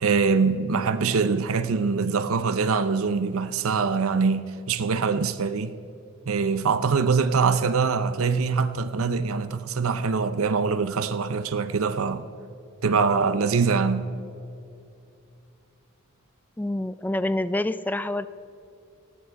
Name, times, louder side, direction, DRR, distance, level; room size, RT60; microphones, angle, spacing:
voice 1, 0.0-5.7 6.3-12.3 12.8-14.1, right 5 dB, 80° right, 0.6 m, -23 dB
voice 2, 16.6-18.3, left 1 dB, 10° left, 0.3 m, -27 dB
19.5 x 15.0 x 4.7 m
head